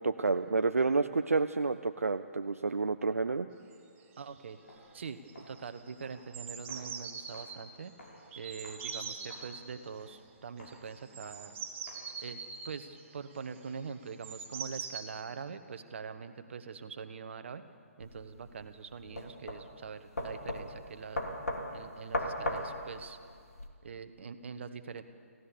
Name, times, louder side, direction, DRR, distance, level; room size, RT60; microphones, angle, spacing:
voice 1, 0.0-3.5, right 4 dB, 75° right, 9 dB, 0.7 m, -29 dB
sound 1, 3.7-3.8 4.0-4.4 4.7-5.0 5.3-7.6 8.3-9.6 10.7-15.0, right 6 dB, 20° right, 2.8 m, -43 dB
voice 2, 4.2-4.6 4.9-5.2 5.5-7.9 8.3-11.6 12.2-17.6 18.0-21.2 21.7-23.2 23.8-25.0, right 6 dB, 55° right, 9 dB, 1.5 m, -43 dB
Walk footsteps, 4.6-12.3, left 1 dB, 60° left, 7.7 m, -57 dB
sound 2, 18.0-23.7, left 1 dB, 80° left, 2.9 m, -37 dB
29.0 x 16.0 x 7.1 m, 2.3 s
figure-of-eight pair, 135°, 8 cm